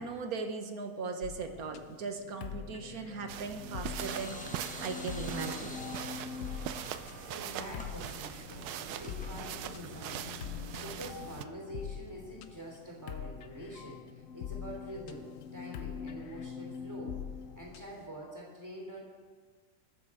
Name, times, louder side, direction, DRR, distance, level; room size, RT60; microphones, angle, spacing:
voice 1, 0.0-4.4 4.8-5.8, right 4 dB, 70° right, 6 dB, 1.6 m, -38 dB
sound 1, 1.2-18.1, left 8 dB, 65° left, 1.0 m, -44 dB
sound 2, 3.3-11.4, right 11 dB, 90° right, 1.1 m, -42 dB
sound 3, 4.0-11.0, left 1 dB, 5° left, 1.1 m, -49 dB
voice 2, 6.7-10.3 10.8-17.2 17.5-19.0, right 1 dB, 10° right, -3 dB, 3.0 m, -46 dB
20.5 x 6.9 x 4.8 m, 1.5 s
omnidirectional pair, 1.6 m